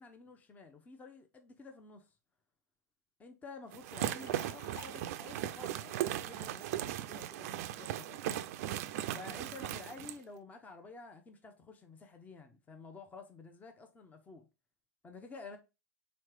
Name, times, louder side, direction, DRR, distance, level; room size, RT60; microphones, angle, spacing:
voice 1, 0.0-2.1 3.2-8.4 9.1-14.5 15.0-15.6, left 3 dB, 15° left, 0.7 m, -51 dB
sound 1, 3.7-10.2, right 12 dB, 55° right, 0.4 m, -38 dB
sound 2, 4.0-7.8, left 7 dB, 70° left, 0.6 m, -58 dB
3.9 x 3.2 x 3.2 m
hypercardioid pair, 105°, 10 cm